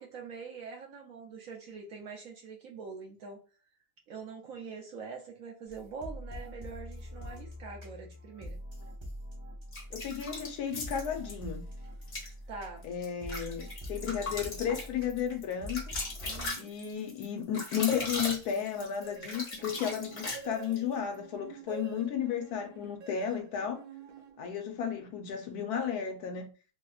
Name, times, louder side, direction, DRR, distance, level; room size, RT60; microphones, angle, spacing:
voice 1, 0.0-3.4 4.1-8.6 12.5-12.8 16.2-16.7, right 5 dB, 65° right, 0.9 m, -44 dB
sound 1, 5.7-16.5, equal, 35° right, 0.4 m, -44 dB
sound 2, 9.7-11.3 12.0-12.3 12.8-20.8, left 2 dB, 50° left, 1.3 m, -38 dB
voice 2, 9.9-11.6 12.8-15.8 16.6-23.8 24.4-26.5, left 8 dB, 70° left, 1.1 m, -33 dB
sound 3, 19.0-24.8, right 6 dB, 90° right, 1.4 m, -49 dB
3.3 x 2.7 x 2.3 m
omnidirectional pair, 1.8 m